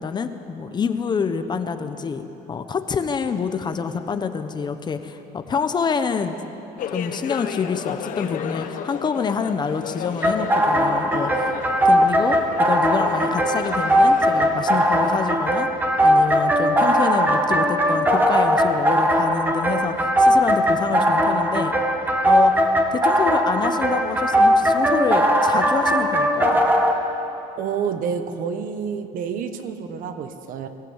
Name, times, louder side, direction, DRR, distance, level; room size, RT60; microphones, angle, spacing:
voice 1, 0.0-6.4 6.9-11.6 11.8-15.7 16.0-21.7 22.3-26.5, left 5 dB, 25° left, 9 dB, 1.0 m, -27 dB
sound 1, 6.8-15.4, left 8 dB, 55° left, 1.2 m, -34 dB
sound 2, 10.2-26.9, equal, 10° right, 1.7 m, -19 dB
voice 2, 27.6-30.7, right 7 dB, 60° right, 8 dB, 1.4 m, -28 dB
23.5 x 15.0 x 8.1 m, 3.0 s
cardioid pair, 145°, 16 cm